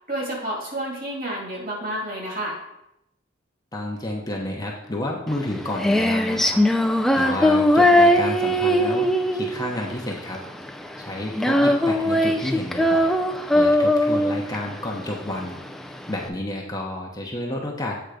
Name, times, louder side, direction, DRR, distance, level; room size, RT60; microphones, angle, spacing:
voice 1, 0.1-2.6 7.2-7.4, right 1 dB, 45° right, -1 dB, 2.0 m, -30 dB
voice 2, 3.7-6.6 6.9-10.4 11.0-13.1 13.5-15.6 16.1-18.0, left 1 dB, 20° left, -1 dB, 0.8 m, -30 dB
Female singing, 5.3-16.3, left 1 dB, ahead, 0.3 m, -20 dB
7.9 x 3.6 x 4.9 m, 0.84 s
head